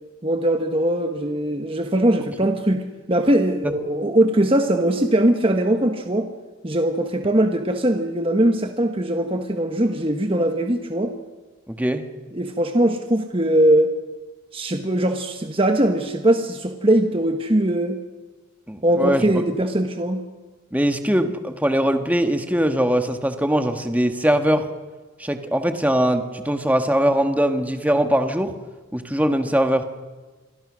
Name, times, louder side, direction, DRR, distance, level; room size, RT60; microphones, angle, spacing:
voice 1, 0.2-6.3 6.6-11.1 12.3-13.9 14.5-18.0 18.8-20.2, right 1 dB, 25° right, 5 dB, 1.2 m, -21 dB
voice 2, 11.7-12.0 18.7-19.2 20.7-24.7 25.2-28.5 28.9-29.8, equal, 5° right, 7 dB, 1.4 m, -21 dB
27.0 x 22.5 x 6.3 m, 1.3 s
head